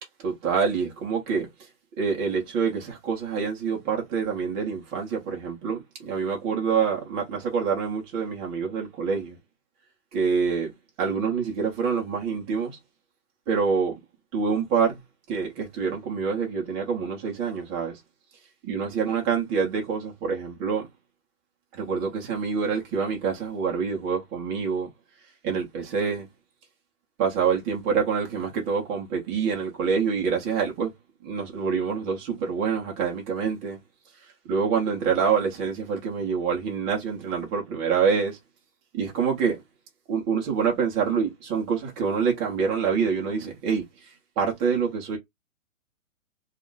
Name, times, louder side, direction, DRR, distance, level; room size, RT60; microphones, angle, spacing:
voice 1, 0.2-1.5 2.0-9.4 10.1-10.7 11.0-12.8 13.5-13.9 14.3-15.0 15.3-18.0 18.6-20.9 21.7-24.9 25.4-26.3 27.2-30.9 31.2-33.8 34.4-38.4 38.9-39.6 40.1-45.2, right 6 dB, 10° right, 0.5 m, -26 dB
2.3 x 2.1 x 3.8 m
hypercardioid pair, 140°, 41 cm